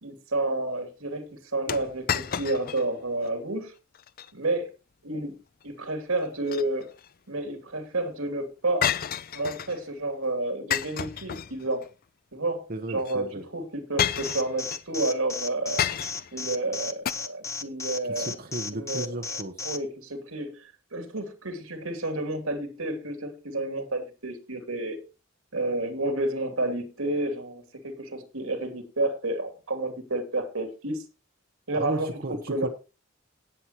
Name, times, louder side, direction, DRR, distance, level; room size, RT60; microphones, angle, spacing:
voice 1, 0.0-3.7 4.3-4.7 5.0-5.4 5.6-6.9 7.3-8.9 9.3-11.8 12.3-15.8 16.3-18.3 18.7-19.1 19.6-25.0 25.5-31.0 31.7-32.7, right 2 dB, 90° right, 2.7 m, -30 dB
sound 1, 1.7-2.9 3.2-3.3 4.0-4.3 6.2-7.1 8.8-9.8 10.7-11.9 13.0-13.2 14.0-14.8 15.8-16.4 17.1-17.2, left 9 dB, 45° left, 0.5 m, -30 dB
voice 2, 12.7-13.4 18.1-19.6 31.7-32.7, right 2 dB, 45° right, 1.1 m, -34 dB
Alarm, 14.2-19.8, left 4 dB, 15° left, 0.8 m, -34 dB
18.0 x 7.6 x 2.9 m
head